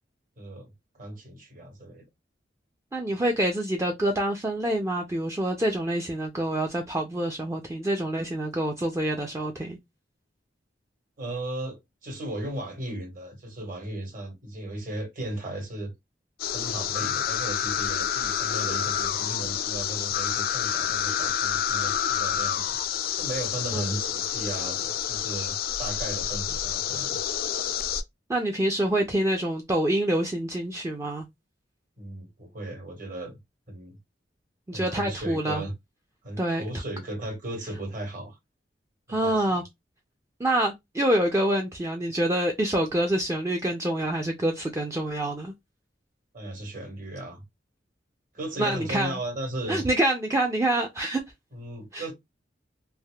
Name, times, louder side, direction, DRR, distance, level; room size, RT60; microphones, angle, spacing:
voice 1, 0.4-2.1 11.2-15.9 16.5-22.8 23.2-27.2 32.0-33.4 33.7-34.0 34.7-35.7 36.2-38.4 39.1-39.6 46.3-47.4 48.3-49.9 51.5-52.1, right 1 dB, 50° right, 1.4 m, -36 dB
voice 2, 2.9-9.8 23.7-23.9 28.3-31.3 34.7-35.6 36.4-36.6 39.1-39.6 40.4-45.5 48.6-49.2 49.7-51.2 51.9-52.1, right 1 dB, 15° right, 0.4 m, -26 dB
sound 1, 16.4-28.0, left 9 dB, 55° left, 0.3 m, -28 dB
3.4 x 2.4 x 2.2 m
head